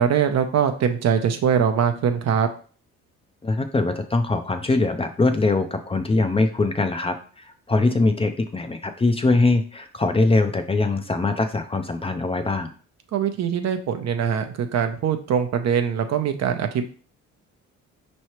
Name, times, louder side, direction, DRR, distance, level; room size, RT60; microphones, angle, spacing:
voice 1, 0.0-2.5 13.1-16.9, right 8 dB, 60° right, 7 dB, 0.7 m, -22 dB
voice 2, 3.4-12.7, left 3 dB, 20° left, 7 dB, 0.5 m, -22 dB
5.4 x 3.2 x 3.0 m, 0.41 s
cardioid pair, 90°, 30 cm